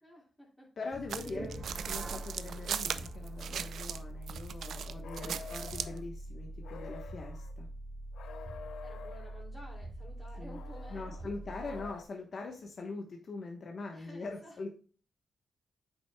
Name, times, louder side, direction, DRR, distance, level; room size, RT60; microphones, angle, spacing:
voice 1, 0.0-0.7 1.3-1.6 5.2-5.6 8.8-11.3 13.9-14.7, equal, 5° left, -7 dB, 2.8 m, -52 dB
voice 2, 0.8-7.7 10.4-10.6 10.9-14.7, left 3 dB, 55° left, 1 dB, 1.1 m, -42 dB
sound 1, 0.9-12.0, right 1 dB, 50° right, 2.6 m, -44 dB
sound 2, 1.1-4.0 4.3-6.0, right 8 dB, 80° right, 0.4 m, -38 dB
sound 3, 5.0-6.0 6.6-7.5 8.1-9.4 10.5-12.0, left 6 dB, 90° left, 0.7 m, -48 dB
8.7 x 6.1 x 2.3 m, 0.39 s
cardioid pair, 105°, 0 cm